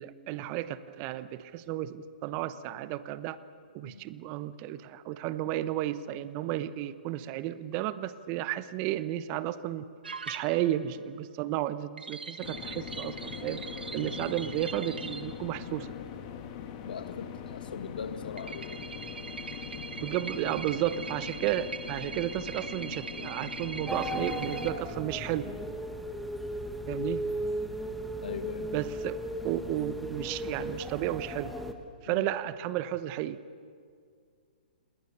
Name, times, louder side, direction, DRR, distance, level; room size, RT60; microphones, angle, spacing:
voice 1, 0.0-3.4 3.7-9.8 10.3-13.6 13.9-15.9 20.0-25.5 26.9-27.2 28.7-31.5 32.0-33.4, right 13 dB, 35° right, 15 dB, 0.9 m, -33 dB
sound 1, 10.0-10.9 12.0-15.3 18.4-24.7, right 4 dB, 85° right, 1.5 m, -41 dB
sound 2, 12.4-24.7, left 8 dB, 40° left, 2.4 m, -42 dB
voice 2, 14.0-14.4 16.8-18.8 28.2-28.7 32.1-32.3, left 6 dB, 70° left, 10 dB, 1.9 m, -41 dB
sound 3, 23.9-31.7, equal, ahead, 1.6 m, -36 dB
28.0 x 21.0 x 6.8 m, 2.2 s
hypercardioid pair, 135°, 5 cm